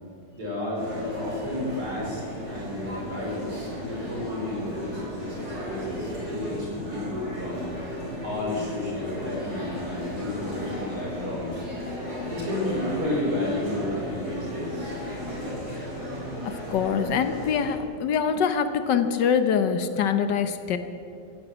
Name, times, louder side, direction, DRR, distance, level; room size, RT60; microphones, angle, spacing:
voice 1, 0.3-2.2 2.5-7.9 8.2-11.9 12.3-14.9, left 1 dB, 55° right, -4 dB, 5.5 m, -32 dB
sound 1, 0.7-17.7, equal, 35° right, 5.5 m, -35 dB
voice 2, 16.4-20.8, left 7 dB, 75° left, 9 dB, 1.4 m, -24 dB
15.5 x 10.5 x 8.0 m, 2.5 s
omnidirectional pair, 2.0 m